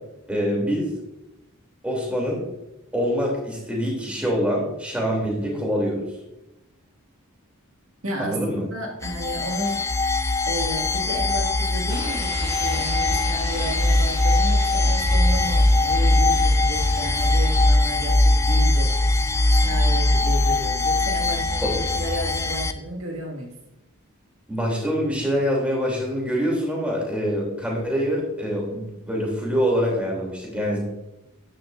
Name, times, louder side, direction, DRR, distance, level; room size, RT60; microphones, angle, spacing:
voice 1, 0.3-0.9 1.8-2.4 2.9-6.0 8.2-8.6 21.6-21.7 24.5-30.8, equal, 5° right, -2 dB, 3.2 m, -25 dB
voice 2, 8.0-9.8 10.5-19.0 19.6-23.5, equal, 60° right, -1 dB, 2.2 m, -32 dB
sound 1, 9.0-22.7, left 2 dB, 15° left, 0.4 m, -21 dB
sound 2, 11.9-17.7, equal, 20° right, 4.3 m, -39 dB
12.0 x 11.0 x 2.7 m, 0.92 s
head